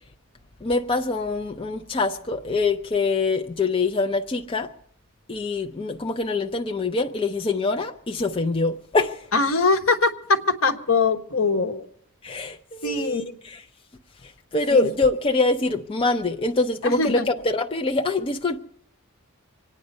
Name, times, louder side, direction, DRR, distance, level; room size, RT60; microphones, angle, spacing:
voice 1, 0.6-4.7 5.3-9.3 12.2-13.6 14.2-18.6, left 3 dB, 25° left, 0.5 m, -24 dB
voice 2, 9.3-11.9 12.8-13.2 14.7-14.9 16.8-17.3, left 3 dB, 65° left, 1.2 m, -22 dB
25.5 x 9.4 x 5.4 m
head